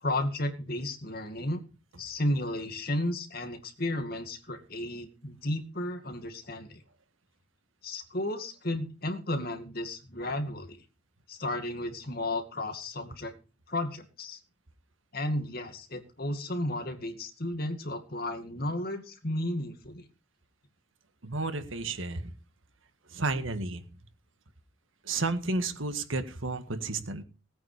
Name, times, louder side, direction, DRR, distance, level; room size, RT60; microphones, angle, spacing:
voice 1, 0.0-1.6 2.0-6.8 7.8-10.8 11.3-13.3 13.7-14.4 15.1-20.0, left 1 dB, 45° left, 7 dB, 2.2 m, -33 dB
voice 2, 21.2-22.3 23.1-23.8 25.0-27.2, right 3 dB, 75° right, 9 dB, 1.7 m, -32 dB
18.5 x 9.0 x 5.0 m, 0.33 s
head